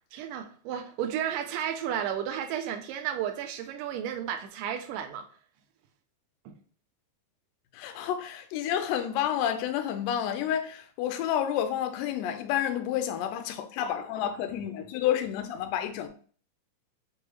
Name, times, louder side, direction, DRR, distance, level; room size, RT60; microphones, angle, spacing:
voice 1, 0.1-5.3 6.5-6.6, right 9 dB, 90° right, 2.2 m, -33 dB
voice 2, 7.7-16.1, left 10 dB, 90° left, 1.5 m, -30 dB
6.4 x 2.3 x 3.1 m
omnidirectional pair, 3.7 m